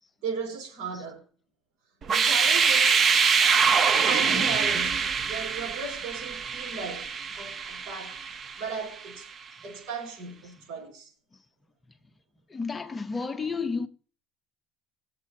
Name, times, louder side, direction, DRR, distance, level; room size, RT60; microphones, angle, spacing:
voice 1, 0.2-1.2 2.1-3.0 4.1-8.2 8.6-9.3 9.6-11.1, right 5 dB, 85° right, 5.1 m, -36 dB
sound 1, 2.0-8.9, right 6 dB, 30° right, 0.7 m, -24 dB
voice 2, 12.5-13.9, left 4 dB, 15° left, 0.8 m, -31 dB
20.0 x 7.6 x 2.7 m
cardioid pair, 150°, 0 cm